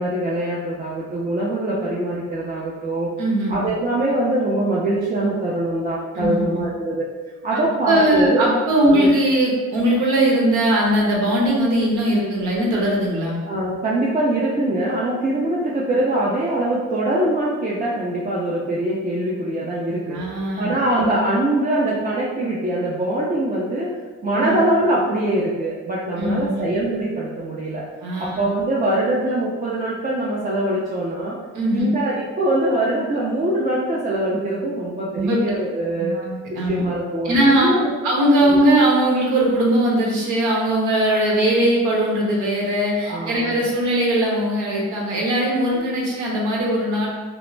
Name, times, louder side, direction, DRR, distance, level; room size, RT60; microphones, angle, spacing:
voice 1, 0.0-3.1 3.5-7.1 7.4-8.5 8.8-9.1 13.5-23.9 24.2-27.8 28.2-31.4 31.7-36.2 36.5-37.9 38.4-38.6 43.1-43.7 45.7-45.9, right 1 dB, 25° right, -6 dB, 0.4 m, -23 dB
voice 2, 3.2-3.7 6.1-6.6 7.5-13.4 20.1-20.7 24.3-24.5 26.2-26.7 28.0-28.4 31.5-31.9 35.1-35.6 36.0-36.9 37.2-37.7 38.0-47.1, right 1 dB, 85° right, -3 dB, 0.8 m, -20 dB
2.4 x 2.0 x 3.1 m, 1.3 s
cardioid pair, 90°, 30 cm